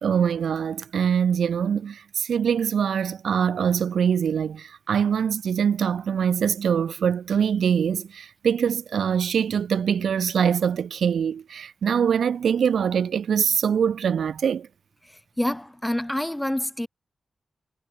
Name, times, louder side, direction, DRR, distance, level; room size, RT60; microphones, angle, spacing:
voice 1, 0.0-14.7, right 7 dB, 85° right, 0.9 m, -23 dB
voice 2, 15.4-16.9, left 1 dB, 10° left, 0.7 m, -27 dB
cardioid pair, 55°, 0 cm